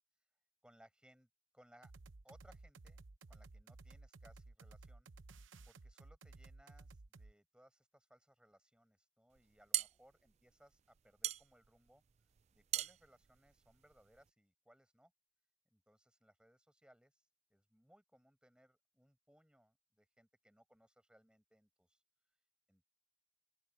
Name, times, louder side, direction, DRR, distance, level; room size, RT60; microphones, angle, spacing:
voice 1, 0.6-1.3 1.5-1.9 2.2-3.0 3.3-5.1 5.6-15.1 15.7-22.9, equal, 5° right, 5.5 m, -68 dB
sound 1, 1.8-7.3, right 3 dB, 80° right, 0.8 m, -56 dB
sound 2, 9.4-14.3, right 13 dB, 35° right, 0.3 m, -42 dB
open air
head